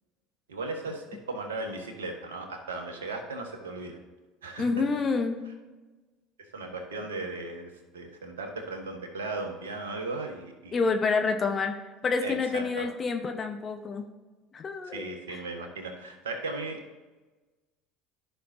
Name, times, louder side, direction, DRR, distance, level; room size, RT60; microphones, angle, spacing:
voice 1, 0.5-4.0 4.4-4.7 6.5-10.8 12.2-12.9 14.9-16.8, right 3 dB, 80° right, 3 dB, 1.4 m, -36 dB
voice 2, 4.6-5.4 10.7-11.7 12.0-14.0 14.5-15.4, left 4 dB, 35° left, 5 dB, 1.0 m, -28 dB
14.0 x 5.6 x 2.7 m, 1.2 s
figure-of-eight pair, 65°, 0 cm